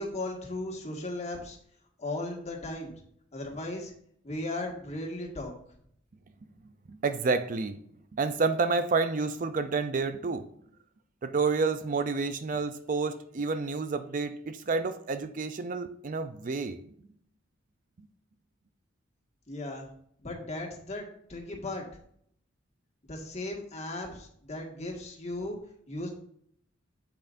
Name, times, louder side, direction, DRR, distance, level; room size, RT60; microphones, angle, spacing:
voice 1, 0.0-1.6 2.0-2.9 3.3-3.9 4.2-5.5 19.5-19.9 20.2-21.9 23.0-25.6 25.9-26.1, left 2 dB, 35° left, 1.8 m, -36 dB
voice 2, 6.9-7.8 8.1-10.5 11.2-16.8, right 4 dB, 40° right, 0.4 m, -29 dB
8.7 x 7.9 x 2.6 m
head